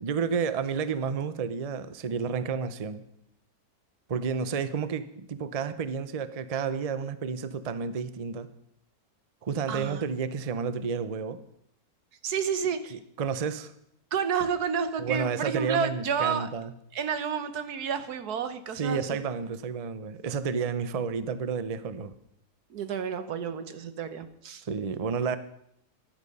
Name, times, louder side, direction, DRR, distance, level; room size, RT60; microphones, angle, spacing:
voice 1, 0.0-3.1 4.1-8.5 9.4-11.4 12.9-13.7 15.0-16.7 18.7-22.1 24.7-25.4, right 6 dB, 35° right, 13 dB, 0.6 m, -31 dB
voice 2, 9.7-10.0 12.2-13.0 14.1-16.5 16.9-19.2 22.7-24.6, right 7 dB, 85° right, 10 dB, 1.6 m, -30 dB
15.0 x 11.5 x 5.4 m, 0.73 s
omnidirectional pair, 1.6 m